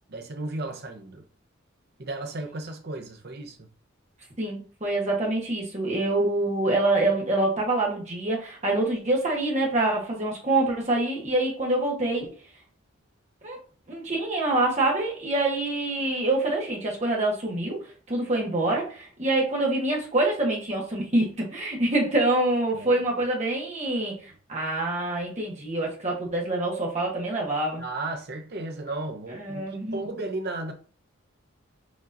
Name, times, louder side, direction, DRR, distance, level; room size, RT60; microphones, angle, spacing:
voice 1, 0.1-1.3 2.0-3.7 22.7-23.0 27.8-30.7, right 2 dB, 50° right, 0.8 m, -34 dB
voice 2, 4.4-12.3 13.4-13.6 13.9-17.8 18.1-27.8 29.4-30.0, right 2 dB, 35° right, 1.3 m, -26 dB
6.0 x 3.0 x 2.6 m
head